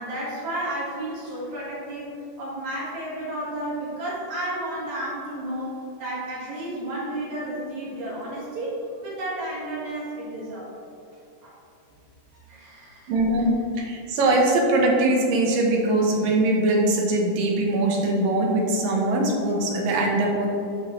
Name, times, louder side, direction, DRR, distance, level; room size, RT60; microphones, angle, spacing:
voice 1, 0.0-2.1 2.4-10.7 11.4-11.5 12.3-13.1, right 1 dB, 60° right, -7 dB, 3.0 m, -32 dB
voice 2, 13.1-20.5, right 2 dB, 80° right, -1 dB, 2.8 m, -22 dB
11.5 x 5.6 x 3.2 m, 2.7 s
omnidirectional pair, 3.9 m